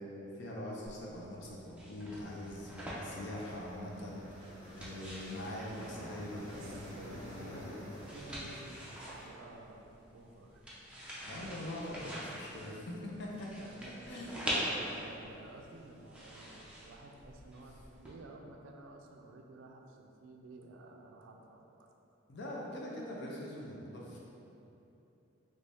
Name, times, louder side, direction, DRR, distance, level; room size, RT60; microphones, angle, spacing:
voice 1, 0.0-8.0 11.2-13.7 14.1-14.3 22.3-24.2, left 1 dB, 55° left, -3 dB, 0.5 m, -43 dB
sound 1, 0.9-18.1, equal, 5° right, 0.4 m, -45 dB
sound 2, 2.2-9.3, equal, 25° left, 1.5 m, -51 dB
voice 2, 6.5-10.6 13.6-21.9, right 2 dB, 65° right, 2 dB, 0.3 m, -52 dB
3.1 x 2.7 x 3.4 m, 2.9 s
head